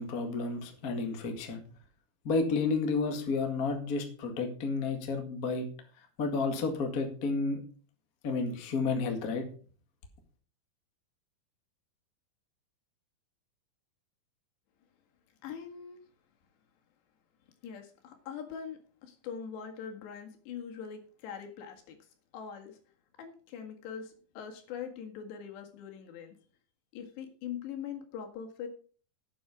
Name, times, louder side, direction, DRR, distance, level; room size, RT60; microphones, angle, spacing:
voice 1, 0.0-1.6 2.2-5.7 6.2-7.6 8.2-9.4, left 4 dB, 40° left, 4 dB, 1.3 m, -31 dB
voice 2, 15.4-16.0 17.6-22.0 22.3-22.8 23.2-26.3 26.9-28.7, left 7 dB, 80° left, 4 dB, 4.0 m, -42 dB
11.5 x 9.3 x 5.1 m, 0.42 s
omnidirectional pair, 4.9 m